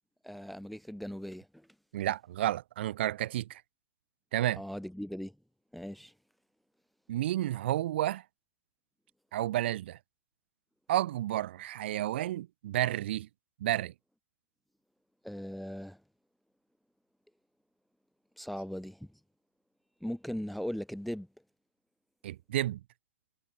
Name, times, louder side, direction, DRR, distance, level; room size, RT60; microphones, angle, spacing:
voice 1, 0.2-1.7 4.5-5.4 5.7-6.1 15.2-16.0 18.4-19.2 20.0-21.3, equal, ahead, 0.9 m, -39 dB
voice 2, 1.9-3.6 4.3-4.6 7.1-8.2 9.3-10.0 10.9-13.3 13.6-13.9 22.2-22.8, right 13 dB, 45° right, 1.4 m, -31 dB
hypercardioid pair, 175°, 8 cm